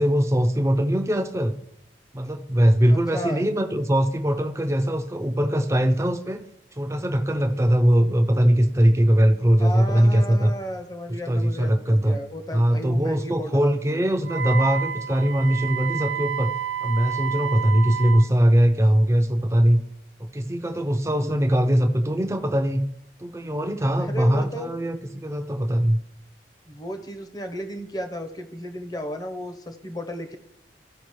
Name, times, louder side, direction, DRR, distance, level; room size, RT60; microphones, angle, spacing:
voice 1, 0.0-1.5 2.1-6.4 6.7-10.5 11.3-12.2 12.5-16.5 16.8-19.8 20.2-22.8 23.2-26.0, equal, 15° right, 7 dB, 0.5 m, -21 dB
voice 2, 2.9-3.4 9.6-14.0 21.1-21.5 24.0-24.7 26.7-30.4, equal, 20° left, 6 dB, 0.8 m, -34 dB
Wind instrument woodwind instrument, 14.2-18.3, right 8 dB, 90° right, 0.4 m, -30 dB
14.5 x 5.1 x 3.1 m, 0.79 s
head